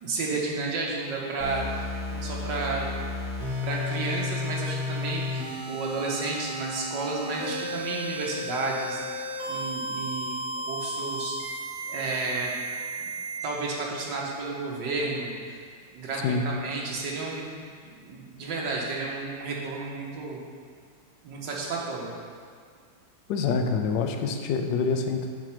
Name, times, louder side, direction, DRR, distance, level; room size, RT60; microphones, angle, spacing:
voice 1, 0.0-1.8 2.1-2.9 3.6-10.4 10.7-11.4 11.9-12.5 13.0-13.1 13.4-15.3 15.9-17.5 17.8-20.4 21.2-22.1, right 3 dB, 80° right, -2 dB, 1.9 m, -32 dB
sound 1, 1.4-13.4, left 1 dB, 50° right, 1.7 m, -33 dB
voice 2, 23.3-25.3, left 5 dB, 85° left, 6 dB, 1.3 m, -26 dB
7.8 x 4.5 x 5.9 m, 2.1 s
omnidirectional pair, 1.9 m